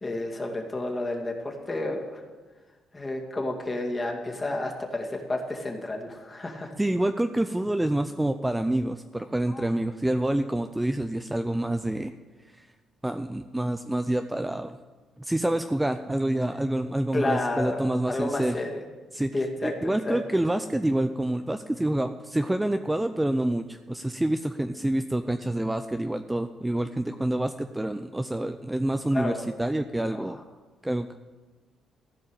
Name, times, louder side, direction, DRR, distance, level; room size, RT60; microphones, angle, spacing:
voice 1, 0.0-2.2 2.9-6.7 9.5-9.7 17.1-18.8 19.3-20.2 29.1-29.4 30.1-30.3, left 2 dB, 25° left, 1 dB, 2.2 m, -31 dB
voice 2, 6.8-12.1 12.5-12.6 13.0-14.8 15.2-18.6 19.1-19.3 19.6-29.3 29.6-30.4 30.8-31.1, right 1 dB, 10° right, 8 dB, 0.5 m, -27 dB
15.0 x 5.4 x 8.9 m, 1.3 s
cardioid pair, 90°, 0 cm